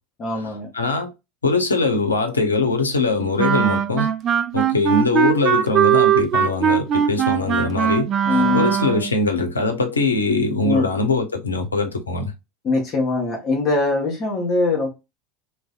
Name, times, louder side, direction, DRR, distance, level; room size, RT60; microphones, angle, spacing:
voice 1, 0.2-0.7 8.3-8.7 10.6-10.9 12.6-14.9, left 3 dB, 40° left, 1.0 m, -22 dB
voice 2, 0.7-1.1 1.4-4.1 4.5-8.1 8.5-12.3, left 3 dB, 85° left, 0.5 m, -21 dB
Wind instrument woodwind instrument, 3.4-9.1, right 8 dB, 40° right, 0.3 m, -20 dB
2.6 x 2.1 x 2.3 m
figure-of-eight pair, 75°, 0 cm